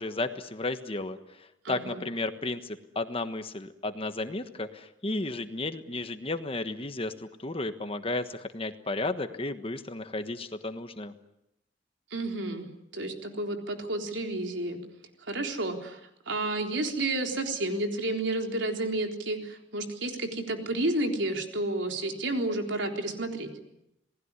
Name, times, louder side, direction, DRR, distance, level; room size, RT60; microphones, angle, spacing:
voice 1, 0.0-11.1, left 2 dB, 30° left, 9 dB, 1.3 m, -33 dB
voice 2, 1.6-2.0 12.1-14.8 15.3-16.0 16.3-23.5, right 2 dB, 75° right, 3 dB, 3.8 m, -31 dB
28.0 x 19.5 x 9.7 m, 0.84 s
head